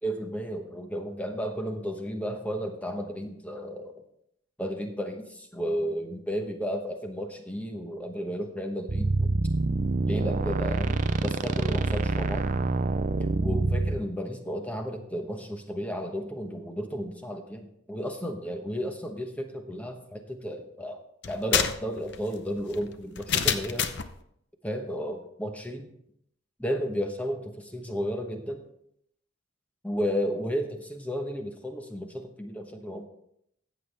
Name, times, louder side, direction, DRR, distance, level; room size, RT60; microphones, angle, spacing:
voice 1, 0.0-3.9 4.6-9.3 10.1-12.5 13.4-21.0 21.3-23.9 24.6-25.9 26.6-28.6 29.8-33.1, equal, 5° left, 4 dB, 1.0 m, -33 dB
sound 1, 8.9-14.0, right 3 dB, 35° right, 0.4 m, -26 dB
sound 2, 21.2-24.1, left 8 dB, 55° left, 0.7 m, -28 dB
14.5 x 8.1 x 3.3 m, 0.74 s
head